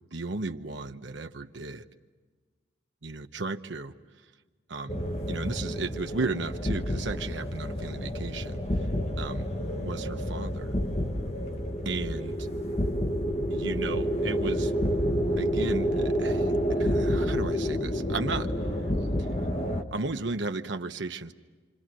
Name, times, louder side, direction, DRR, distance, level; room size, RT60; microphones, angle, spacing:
voice 1, 0.1-1.8 3.0-3.9 4.7-5.0 5.3-8.9 9.2-10.8 11.8-12.5 13.5-14.7 15.4-18.5 18.8-18.9 19.2-19.3 19.9-21.3, right 3 dB, 85° right, 8 dB, 1.0 m, -35 dB
sound 1, 4.9-19.8, equal, 35° left, 1.6 m, -29 dB
28.5 x 26.5 x 6.2 m, 1.4 s
head